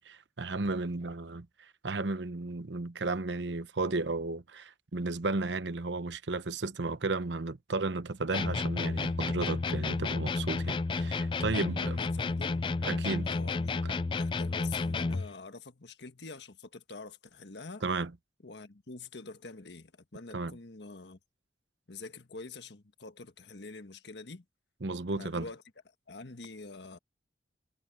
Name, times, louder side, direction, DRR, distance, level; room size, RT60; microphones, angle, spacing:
voice 1, 0.0-12.0 12.8-13.3 13.8-13.9 17.8-18.1 20.3-20.6 24.8-25.5, right 3 dB, 90° right, 0.9 m, -34 dB
sound 1, 8.3-15.3, left 3 dB, 30° left, 0.3 m, -31 dB
voice 2, 11.5-12.7 13.2-13.8 14.1-17.8 18.4-21.2 21.9-24.4 25.1-25.6 26.1-27.0, left 3 dB, 75° left, 1.5 m, -46 dB
head